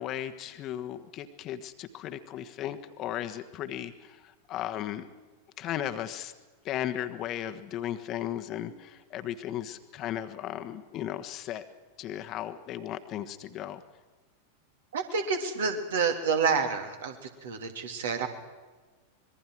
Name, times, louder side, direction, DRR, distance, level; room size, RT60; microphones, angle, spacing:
voice 1, 0.0-5.1 5.6-6.3 6.6-11.6 12.0-13.8, left 11 dB, 35° left, 8 dB, 1.4 m, -36 dB
voice 2, 14.9-17.1 17.4-18.3, right 5 dB, 60° right, 5 dB, 2.8 m, -28 dB
26.0 x 21.5 x 4.7 m, 1.3 s
figure-of-eight pair, 90°, 0 cm